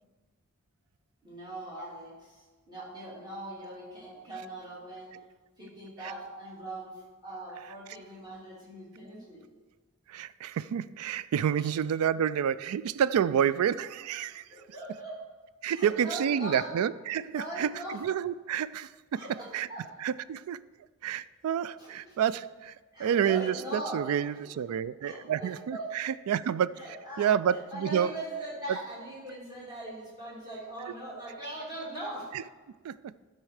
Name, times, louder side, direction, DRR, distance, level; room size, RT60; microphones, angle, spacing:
voice 1, 1.2-5.1 5.6-9.4 11.6-11.7 14.5-15.2 15.7-16.7 17.2-18.0 19.1-19.9 21.8-22.2 22.9-24.1 24.5-24.6 25.0-25.9 26.7-32.3, right 1 dB, 20° right, 2.7 m, -41 dB
voice 2, 10.1-14.5 15.6-19.2 19.5-19.7 20.0-20.7 21.0-26.7 27.2-28.1 32.8-33.1, right 8 dB, 75° right, 0.3 m, -29 dB
12.5 x 4.4 x 4.9 m
head